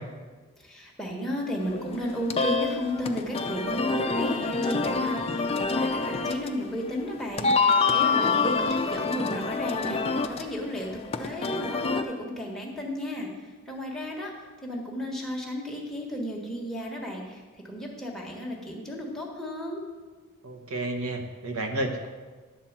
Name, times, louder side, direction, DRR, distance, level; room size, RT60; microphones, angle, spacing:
voice 1, 0.6-10.9 11.2-13.3 13.7-14.3 14.6-17.4 17.7-19.8, equal, ahead, -3 dB, 1.4 m, -33 dB
sound 1, 1.6-12.0, left 4 dB, 30° left, 0.5 m, -27 dB
voice 2, 20.4-22.1, right 1 dB, 85° right, 4 dB, 1.1 m, -31 dB
11.0 x 4.4 x 7.3 m, 1.4 s
head